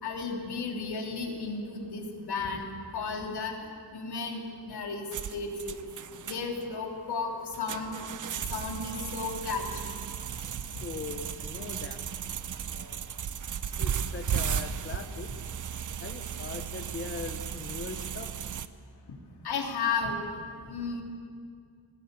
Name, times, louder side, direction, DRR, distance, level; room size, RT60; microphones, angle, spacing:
voice 1, 0.0-3.5 3.9-5.8 6.2-7.9 8.5-9.9 19.4-20.2 20.6-21.0, left 4 dB, 85° left, 1 dB, 3.3 m, -34 dB
sound 1, 5.1-18.7, right 8 dB, 50° right, 0.8 m, -35 dB
voice 2, 10.8-12.0 12.7-13.0 13.7-15.3 16.0-18.3, left 5 dB, 30° left, 6 dB, 1.0 m, -40 dB
20.0 x 19.0 x 8.2 m, 2.2 s
wide cardioid pair, 145°, 38 cm